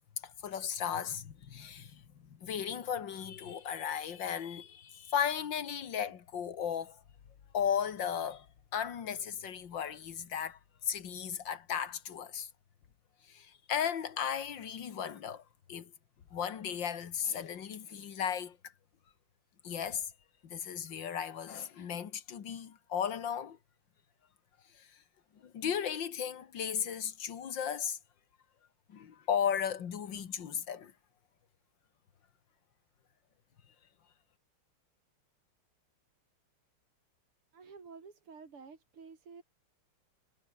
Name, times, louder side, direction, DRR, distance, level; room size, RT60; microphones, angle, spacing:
voice 1, 0.2-2.0 2.3-7.0 7.5-8.5 8.7-12.5 13.3-15.4 15.7-15.9 16.3-18.6 19.6-20.1 20.4-23.6 24.8-24.9 25.4-28.0 28.9-30.9, left 8 dB, 60° left, 2.3 m, -35 dB
voice 2, 37.5-39.4, right 5 dB, 80° right, 4.2 m, -51 dB
omnidirectional pair, 2.4 m